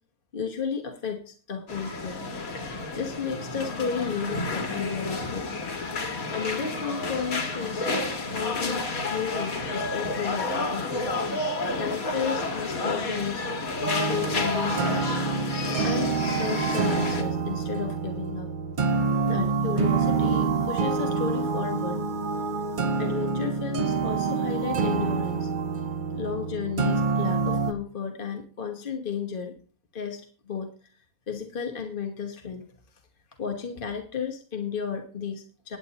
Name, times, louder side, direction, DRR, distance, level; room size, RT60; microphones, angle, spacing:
voice 1, 0.3-2.2 2.9-5.5 6.3-7.9 8.2-8.8 9.1-10.9 11.7-15.2 15.8-18.5 19.2-22.0 23.0-25.5 26.1-29.6 29.9-30.7 31.3-32.6 33.4-35.8, left 6 dB, 40° left, 2 dB, 1.3 m, -33 dB
sound 1, 1.7-17.2, left 2 dB, 70° left, 2.3 m, -30 dB
sound 2, 13.8-27.7, right 4 dB, 45° right, 0.8 m, -27 dB
20.0 x 8.3 x 2.9 m, 0.42 s
omnidirectional pair, 1.6 m